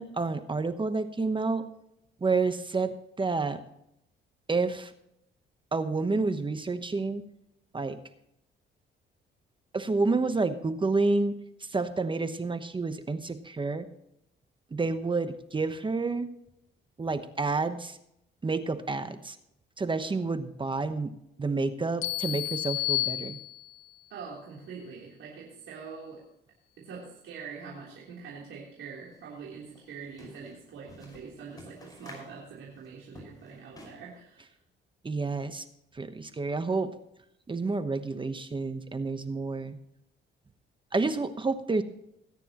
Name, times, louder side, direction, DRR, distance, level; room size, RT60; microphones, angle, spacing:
voice 1, 0.0-1.6 2.2-3.6 4.5-4.9 5.7-7.2 7.7-8.0 9.7-11.3 11.6-13.9 14.7-16.3 17.0-18.0 18.4-19.4 19.8-21.1 21.4-23.4 35.0-35.6 35.9-36.9 37.5-39.8 40.9-41.8, right 3 dB, 25° right, 10 dB, 1.0 m, -29 dB
sound 1, 22.0-23.9, left 18 dB, 85° left, 1.2 m, -31 dB
voice 2, 24.1-26.2 26.8-34.5, right 5 dB, 80° right, -5 dB, 3.5 m, -44 dB
sound 2, 29.1-29.2 29.5-34.1, left 1 dB, 20° left, 5.6 m, -50 dB
20.0 x 9.8 x 3.0 m, 0.79 s
cardioid pair, 95°, 20 cm